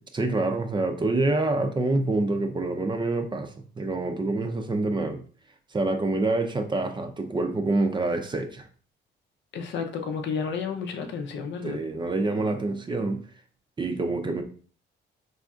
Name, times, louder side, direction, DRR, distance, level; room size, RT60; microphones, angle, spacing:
voice 1, 0.1-5.2 5.7-8.7 11.6-13.2 13.8-14.4, right 2 dB, 25° right, 0.5 m, -26 dB
voice 2, 9.5-11.8, left 6 dB, 65° left, 0.6 m, -31 dB
4.1 x 2.6 x 2.3 m
cardioid pair, 90°, 20 cm